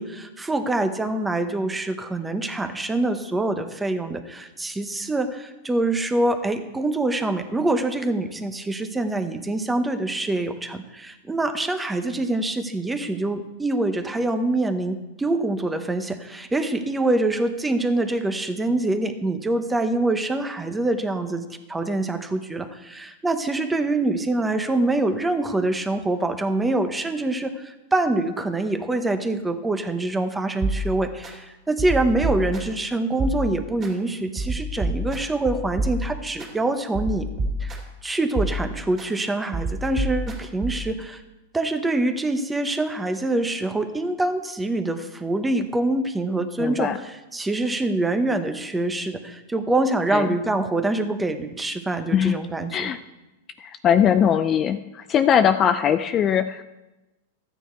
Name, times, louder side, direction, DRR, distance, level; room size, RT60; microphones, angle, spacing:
voice 1, 0.0-37.3 37.6-41.2 41.5-52.9, right 2 dB, 10° right, 8 dB, 1.0 m, -25 dB
sound 1, 30.6-31.3 31.8-32.8 33.2-33.9 34.4-36.5 36.9-38.0 38.3-39.1 39.5-40.9, right 1 dB, 25° right, 2.7 m, -29 dB
voice 2, 46.6-47.0 50.1-50.3 52.1-52.4 52.7-53.0 53.6-56.6, left 8 dB, 30° left, 9 dB, 0.4 m, -20 dB
13.5 x 9.2 x 4.5 m, 1.0 s
hypercardioid pair, 130°, 0 cm